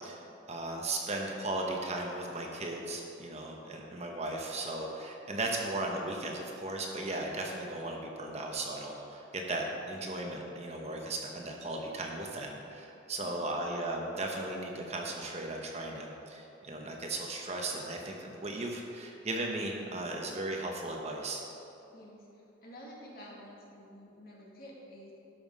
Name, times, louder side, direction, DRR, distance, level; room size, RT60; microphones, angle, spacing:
voice 1, 0.0-21.4, right 2 dB, 35° right, 0 dB, 1.0 m, -36 dB
voice 2, 21.9-25.1, equal, 50° left, -4 dB, 2.0 m, -50 dB
12.0 x 5.8 x 5.3 m, 2.9 s
head